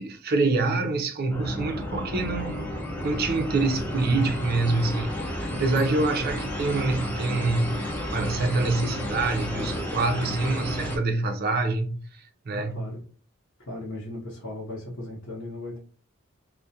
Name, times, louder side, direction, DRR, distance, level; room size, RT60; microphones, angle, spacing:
voice 1, 0.0-2.7 3.0-12.9, right 3 dB, 50° right, 0.4 m, -26 dB
sound 1, 1.3-11.0, left 1 dB, 10° left, 0.5 m, -32 dB
voice 2, 12.5-13.0 13.7-15.8, left 1 dB, 60° left, 0.8 m, -37 dB
2.3 x 2.1 x 2.6 m
head